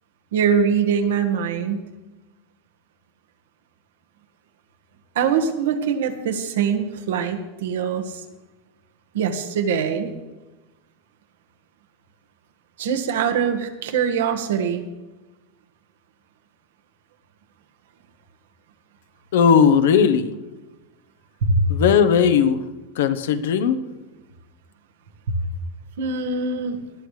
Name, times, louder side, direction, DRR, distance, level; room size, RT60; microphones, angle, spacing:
voice 1, 0.3-1.9 5.1-8.2 9.1-10.1 12.8-14.8 21.4-21.6 25.3-25.4 26.0-26.8, right 6 dB, 90° right, 6 dB, 1.5 m, -23 dB
voice 2, 19.3-20.3 21.7-22.6 23.0-23.8, left 7 dB, 85° left, 10 dB, 1.0 m, -17 dB
19.0 x 11.5 x 3.3 m, 1.1 s
supercardioid pair, 155°, 0 cm